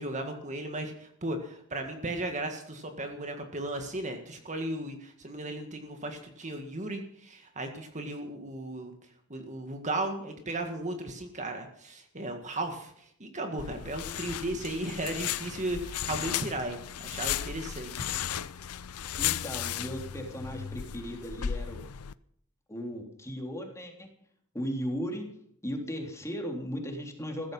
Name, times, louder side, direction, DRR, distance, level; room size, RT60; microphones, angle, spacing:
voice 1, 0.0-8.9 9.3-18.0, right 1 dB, 35° right, 5 dB, 1.9 m, -35 dB
sound 1, 13.6-22.1, left 10 dB, 85° left, 0.6 m, -35 dB
voice 2, 19.2-21.9 22.7-24.1 24.5-25.2 25.6-27.5, equal, 15° left, 2 dB, 3.4 m, -36 dB
15.5 x 14.5 x 5.5 m, 0.67 s
head